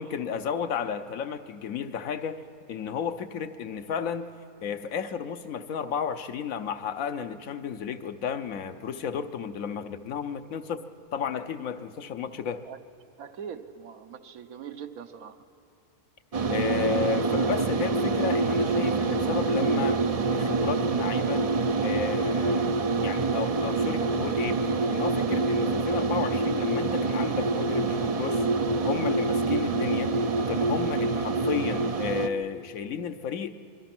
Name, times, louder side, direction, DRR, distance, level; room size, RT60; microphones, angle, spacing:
voice 1, 0.0-2.4 2.7-4.3 4.6-10.8 11.1-12.6 16.5-20.0 20.3-21.5 21.8-24.6 24.9-28.5 28.8-33.5, left 7 dB, 70° left, 9 dB, 1.2 m, -33 dB
voice 2, 13.2-15.4, right 7 dB, 75° right, 9 dB, 1.3 m, -41 dB
sound 1, 16.3-32.3, right 3 dB, 50° right, 0.4 m, -26 dB
26.0 x 22.0 x 6.0 m, 2.5 s
omnidirectional pair, 1.6 m